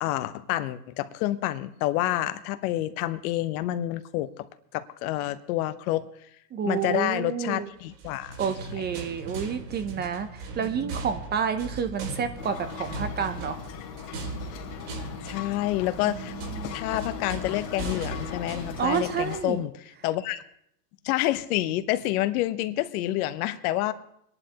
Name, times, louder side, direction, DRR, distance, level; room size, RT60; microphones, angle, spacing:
voice 1, 0.0-4.5 4.7-6.1 6.7-8.4 10.0-10.1 15.2-16.4 16.7-19.7 20.0-20.4 21.0-23.9, left 15 dB, 60° left, 13 dB, 0.8 m, -28 dB
voice 2, 6.5-7.7 8.4-13.6 16.1-16.8 18.8-19.6, right 7 dB, 20° right, 10 dB, 0.5 m, -30 dB
sound 1, 7.9-19.3, right 3 dB, 70° right, 4.8 m, -39 dB
sound 2, 12.4-19.4, left 8 dB, 85° left, 2.7 m, -39 dB
23.0 x 11.0 x 2.9 m, 0.72 s
supercardioid pair, 120°, 49 cm